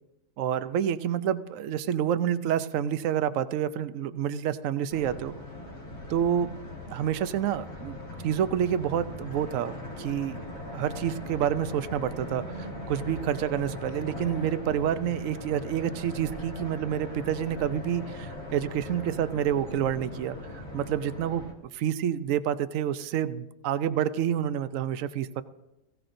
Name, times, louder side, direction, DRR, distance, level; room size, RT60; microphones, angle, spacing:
voice 1, 0.4-5.3 6.1-6.5 6.9-8.0 8.2-10.4 10.7-21.4 21.7-25.4, right 9 dB, 75° right, 13 dB, 1.0 m, -28 dB
sound 1, 4.9-21.5, left 1 dB, 90° left, 2.6 m, -40 dB
17.5 x 16.5 x 2.6 m, 0.96 s
omnidirectional pair, 1.4 m